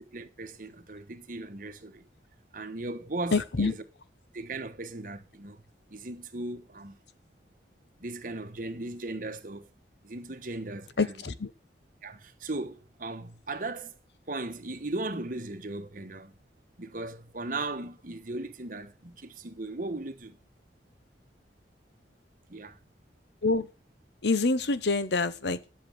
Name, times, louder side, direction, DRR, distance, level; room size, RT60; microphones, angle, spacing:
voice 1, 0.1-2.1 2.5-3.8 4.3-5.6 5.9-7.0 8.0-9.7 10.0-11.1 12.0-14.0 14.3-16.3 16.8-20.4 22.5-22.8, right 2 dB, 50° right, 1.2 m, -37 dB
voice 2, 3.3-3.7 11.0-11.5 23.4-23.7 24.2-25.7, left 3 dB, 75° left, 0.9 m, -26 dB
10.5 x 7.8 x 6.3 m
head